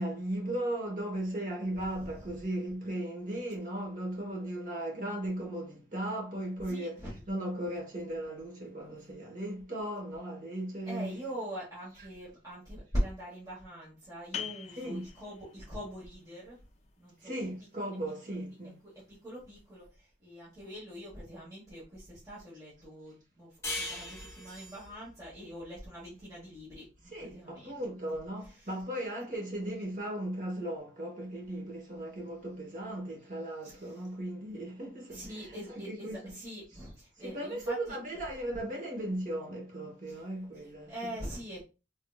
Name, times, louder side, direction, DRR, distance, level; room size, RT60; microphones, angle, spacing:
voice 1, 0.0-11.2 12.0-12.1 14.8-15.0 17.2-18.8 27.1-36.3 36.7-36.8 37.2-41.2, right 1 dB, 45° right, 1.3 m, -37 dB
voice 2, 2.0-2.3 6.7-7.2 10.8-16.6 17.0-17.3 18.6-27.7 28.1-28.7 33.6-34.0 35.1-38.0 40.1-40.2 40.9-41.6, equal, 20° right, 1.3 m, -42 dB
sound 1, 14.3-19.7, left 8 dB, 35° left, 0.3 m, -47 dB
sound 2, 23.6-26.8, left 2 dB, 15° left, 1.1 m, -41 dB
3.6 x 2.8 x 2.3 m
head